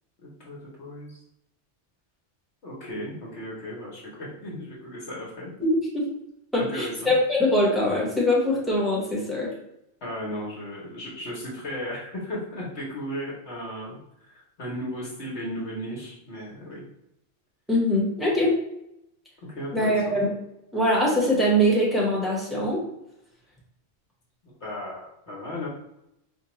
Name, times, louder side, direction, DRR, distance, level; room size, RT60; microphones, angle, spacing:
voice 1, 0.2-1.2 2.6-5.5 6.6-7.1 10.0-14.0 14.3-16.8 19.5-20.2 24.4-25.7, equal, 70° left, -5 dB, 1.2 m, -35 dB
voice 2, 5.6-6.0 6.5-9.5 17.7-18.5 19.7-20.3 20.7-22.8, equal, ahead, -5 dB, 1.0 m, -22 dB
4.4 x 2.3 x 2.9 m, 0.82 s
omnidirectional pair, 1.2 m